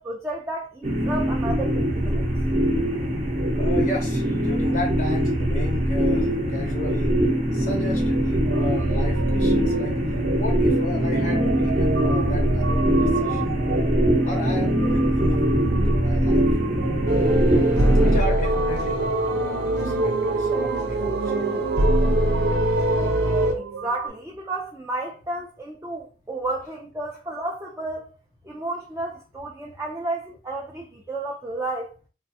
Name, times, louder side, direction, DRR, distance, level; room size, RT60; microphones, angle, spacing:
voice 1, 0.0-2.2 23.5-28.1 28.4-31.9, right 2 dB, 15° right, 0.3 m, -32 dB
sound 1, 0.8-18.2, equal, 35° right, 0.7 m, -22 dB
voice 2, 3.5-7.1 7.5-9.9 10.4-13.5 14.2-16.5 18.0-21.5, left 2 dB, 45° left, 0.5 m, -34 dB
sound 2, 8.4-24.1, right 5 dB, 90° right, 0.3 m, -32 dB
sound 3, 17.1-23.5, right 1 dB, 70° right, 0.7 m, -22 dB
3.3 x 2.4 x 2.7 m
head